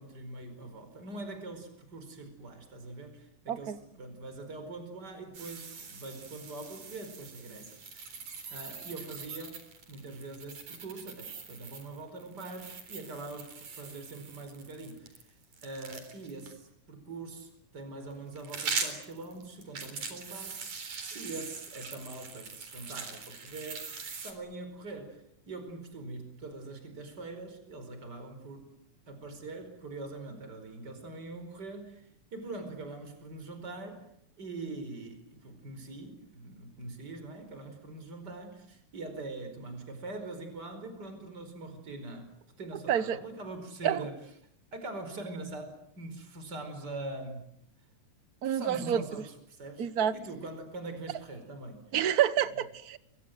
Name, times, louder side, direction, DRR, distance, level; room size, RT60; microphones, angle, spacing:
voice 1, 0.0-8.2 8.5-15.3 15.6-23.9 24.2-28.7 29.1-34.1 34.4-44.2 44.7-47.5 48.4-51.9, right 2 dB, 35° right, 8 dB, 5.2 m, -43 dB
voice 2, 3.5-3.8 42.9-43.2 43.8-44.0 48.4-49.0 49.8-50.1 51.9-53.0, right 10 dB, 55° right, 14 dB, 1.0 m, -28 dB
sound 1, 5.3-16.5 18.1-24.3, right 5 dB, 75° right, 5.3 m, -42 dB
29.5 x 23.5 x 7.9 m, 0.71 s
omnidirectional pair, 3.4 m